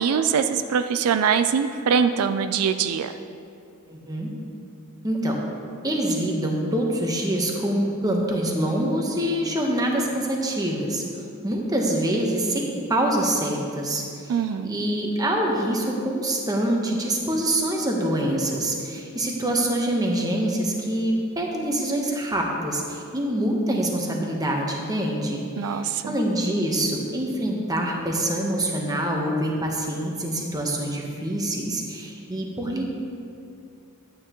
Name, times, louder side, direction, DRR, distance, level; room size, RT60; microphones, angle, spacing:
voice 1, 0.0-3.1 14.3-14.7 25.6-26.2, right 7 dB, 85° right, 9 dB, 0.4 m, -23 dB
voice 2, 3.9-4.3 5.0-5.4 5.8-11.0 11.4-32.9, right 1 dB, 15° right, 0 dB, 1.0 m, -25 dB
11.5 x 9.0 x 3.0 m, 2.6 s
head